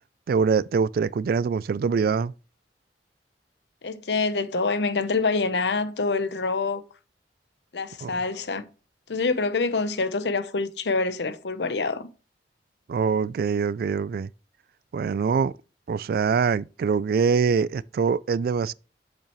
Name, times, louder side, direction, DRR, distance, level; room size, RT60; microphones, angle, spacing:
voice 1, 0.3-2.3 8.0-8.1 12.9-14.3 14.9-15.5 15.9-18.7, right 5 dB, 55° right, 0.3 m, -24 dB
voice 2, 3.8-6.8 7.7-8.7 9.1-12.1, left 3 dB, 75° left, 0.8 m, -26 dB
7.5 x 7.3 x 3.1 m
head